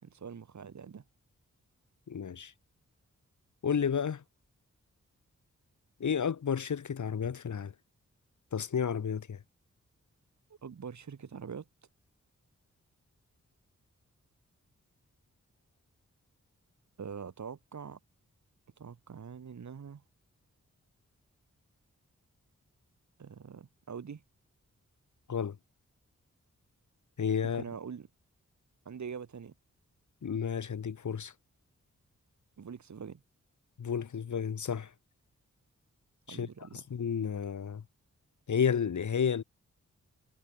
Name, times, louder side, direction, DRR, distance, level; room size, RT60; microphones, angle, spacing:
voice 1, 0.0-1.0 10.6-11.7 17.0-18.0 18.8-20.0 23.2-24.2 27.5-28.1 28.8-29.5 32.6-33.2 36.3-36.8, right 6 dB, 75° right, 3.3 m, -44 dB
voice 2, 2.1-2.5 3.6-4.2 6.0-7.7 8.5-9.4 25.3-25.5 27.2-27.6 30.2-31.3 33.8-34.9 36.3-36.5 36.9-37.8 38.5-39.4, left 7 dB, 85° left, 2.9 m, -31 dB
wide cardioid pair, 110°, 29 cm